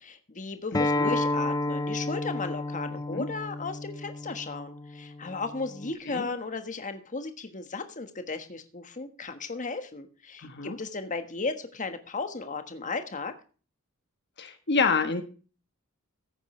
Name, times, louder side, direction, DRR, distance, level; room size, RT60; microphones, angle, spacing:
voice 1, 0.0-13.3, left 3 dB, 35° left, 8 dB, 1.4 m, -35 dB
voice 2, 0.7-1.1 2.9-3.3 6.1-6.3 10.4-10.8 14.4-15.2, left 4 dB, 50° left, 8 dB, 1.3 m, -28 dB
Acoustic guitar, 0.7-5.9, left 2 dB, 15° left, 0.5 m, -31 dB
15.0 x 9.4 x 3.2 m, 0.37 s
head